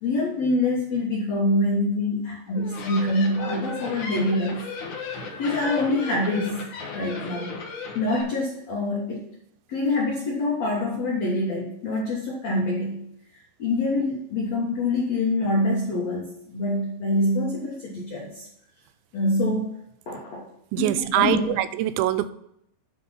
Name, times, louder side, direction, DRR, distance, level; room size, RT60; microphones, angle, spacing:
voice 1, 0.0-4.7 5.4-6.6 6.9-7.6 7.9-9.2 9.7-13.0 13.6-18.5 19.1-19.7 20.1-20.5 20.8-21.6, left 2 dB, 85° left, -2 dB, 1.5 m, -25 dB
sound 1, 2.5-8.2, left 4 dB, 60° left, 2.2 m, -35 dB
voice 2, 20.7-22.3, right 13 dB, 90° right, 13 dB, 2.9 m, -23 dB
10.0 x 4.2 x 5.6 m, 0.73 s
omnidirectional pair, 5.2 m